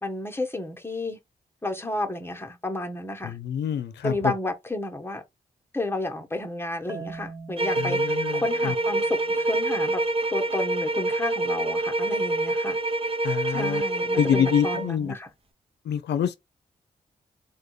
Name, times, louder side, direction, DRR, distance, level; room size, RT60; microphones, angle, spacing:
voice 1, 0.0-1.2 1.6-3.4 4.0-5.2 5.7-10.0 10.3-12.8 13.5-15.3, left 2 dB, 15° left, 1.0 m, -32 dB
voice 2, 3.2-4.3 7.8-8.7 13.2-13.8 14.1-15.1 15.9-16.4, left 8 dB, 80° left, 0.5 m, -26 dB
Marimba xylophone, 6.9-9.9, right 4 dB, 15° right, 1.1 m, -43 dB
sound 1, 7.6-14.9, right 2 dB, 35° right, 0.9 m, -26 dB
3.4 x 2.3 x 3.1 m
supercardioid pair, 45°, 17 cm